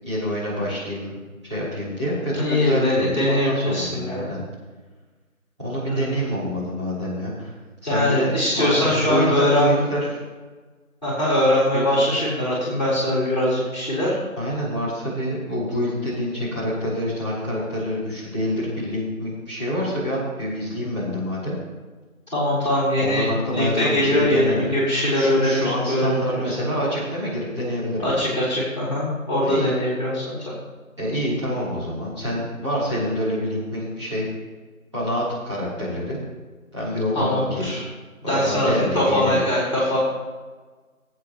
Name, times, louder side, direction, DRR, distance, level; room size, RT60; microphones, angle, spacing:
voice 1, 0.0-4.4 5.6-7.5 7.8-10.2 11.7-11.8 14.4-21.5 23.0-24.7 25.1-28.2 29.4-29.7 31.0-34.3 34.9-36.2 36.7-37.7 38.2-39.4, equal, 20° right, -12 dB, 3.2 m, -26 dB
voice 2, 2.3-4.3 5.9-6.1 7.8-9.8 11.0-14.2 22.3-23.3 23.5-26.4 28.0-30.3 37.1-37.8 38.3-40.0, left 1 dB, 30° left, -9 dB, 3.9 m, -22 dB
18.0 x 8.6 x 3.0 m, 1.3 s
figure-of-eight pair, 170°, 43 cm